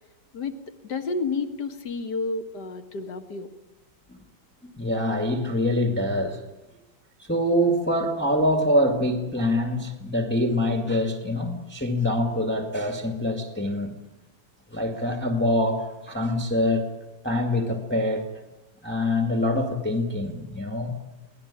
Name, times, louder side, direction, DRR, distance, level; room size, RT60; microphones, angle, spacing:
voice 1, 0.8-3.5, left 3 dB, 60° left, 2.4 m, -30 dB
voice 2, 4.8-6.4 7.3-13.9 14.7-16.9 17.2-18.2 18.8-20.9, left 1 dB, 5° left, 2.0 m, -25 dB
24.5 x 19.0 x 10.0 m
omnidirectional pair, 2.1 m